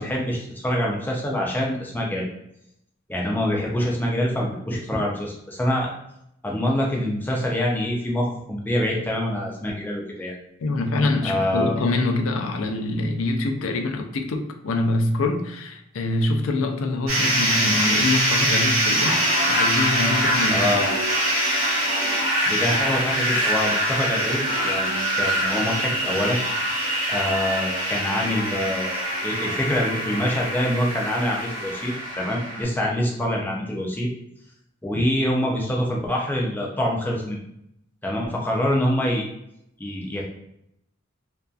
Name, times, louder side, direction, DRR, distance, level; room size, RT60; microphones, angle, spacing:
voice 1, 0.0-2.3 3.1-5.9 6.4-10.3 11.2-11.7 20.5-20.9 22.5-26.4 27.1-34.1 34.8-37.4 38.0-39.3 39.8-40.2, left 1 dB, 10° left, -2 dB, 0.4 m, -25 dB
voice 2, 10.6-20.7, left 2 dB, 75° left, 5 dB, 0.4 m, -25 dB
sound 1, 17.1-32.6, right 1 dB, 90° right, 0.9 m, -24 dB
2.6 x 2.3 x 2.3 m, 0.77 s
head